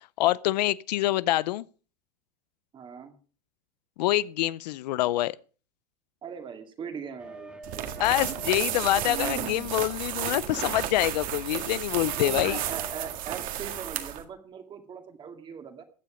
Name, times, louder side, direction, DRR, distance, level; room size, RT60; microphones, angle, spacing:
voice 1, 0.2-1.6 4.0-5.4 8.0-12.6, left 16 dB, 90° left, 0.6 m, -26 dB
voice 2, 2.7-3.1 6.2-7.5 12.2-15.8, right 6 dB, 25° right, 2.2 m, -40 dB
sound 1, 7.2-10.2 12.0-13.1, right 2 dB, 5° right, 1.4 m, -46 dB
sound 2, 7.6-14.2, right 11 dB, 40° right, 2.0 m, -32 dB
15.5 x 9.4 x 5.0 m
supercardioid pair, 150°, 20 cm